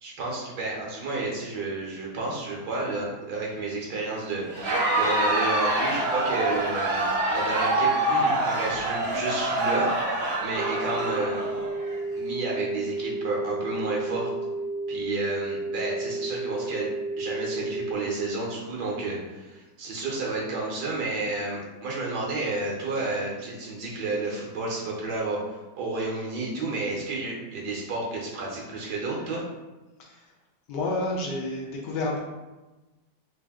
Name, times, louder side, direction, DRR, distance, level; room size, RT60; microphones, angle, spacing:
voice 1, 0.0-4.4 4.9-9.9 10.4-11.4 12.1-14.3 14.9-16.9 17.2-29.4, right 3 dB, 70° right, -2 dB, 1.3 m, -31 dB
Crowd, 4.5-12.0, right 1 dB, 55° right, 0.7 m, -26 dB
sound 1, 10.5-17.9, right 2 dB, 55° left, 0.8 m, -32 dB
voice 2, 30.7-32.2, left 2 dB, 75° left, -2 dB, 1.2 m, -30 dB
3.4 x 2.5 x 3.4 m, 1.1 s
omnidirectional pair, 1.9 m